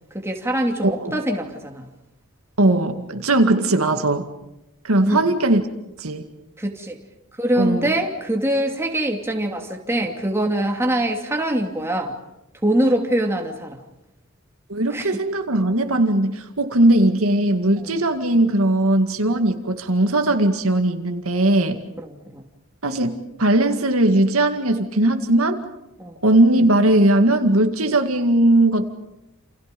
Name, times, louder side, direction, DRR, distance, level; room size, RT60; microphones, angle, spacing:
voice 1, 0.1-1.9 5.0-5.3 6.6-7.0 7.4-12.2 12.6-13.8 14.9-15.2 17.8-17.9 22.0-22.4 26.0-26.2, right 1 dB, 10° right, 1 dB, 2.8 m, -23 dB
voice 2, 0.8-1.2 2.6-4.3 4.8-5.6 6.0-6.2 7.6-7.9 14.7-21.8 22.8-25.6 26.2-28.9, right 1 dB, 80° right, 6 dB, 2.1 m, -19 dB
29.0 x 28.5 x 5.3 m, 0.91 s
head